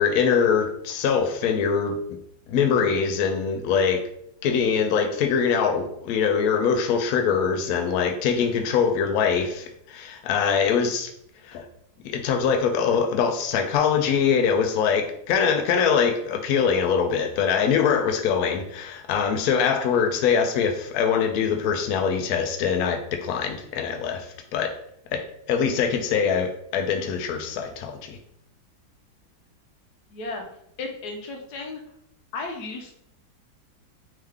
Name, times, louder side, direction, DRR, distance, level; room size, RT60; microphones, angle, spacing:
voice 1, 0.0-2.0 2.5-4.0 4.4-11.1 11.4-11.7 12.0-24.7 25.1-25.2 25.5-28.2, left 6 dB, 80° left, 5 dB, 0.8 m, -23 dB
voice 2, 30.1-30.4 30.8-31.8 32.3-32.9, left 3 dB, 65° left, 2 dB, 1.2 m, -34 dB
3.6 x 3.3 x 3.4 m, 0.72 s
omnidirectional pair, 2.1 m